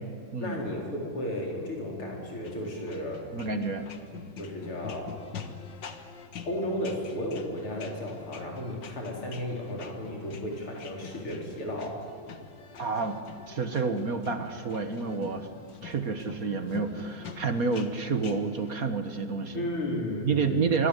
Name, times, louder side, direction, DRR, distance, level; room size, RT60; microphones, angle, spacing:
voice 1, 0.4-3.6 4.4-5.1 6.5-12.0 19.5-20.8, left 1 dB, 90° left, 0 dB, 5.5 m, -34 dB
sound 1, 2.4-18.7, left 6 dB, 60° left, 2.0 m, -45 dB
voice 2, 3.3-3.9 12.8-13.2 13.5-15.5 15.8-19.7 20.2-20.9, right 4 dB, 45° right, 9 dB, 1.7 m, -29 dB
26.0 x 23.0 x 8.2 m, 2.3 s
omnidirectional pair, 2.3 m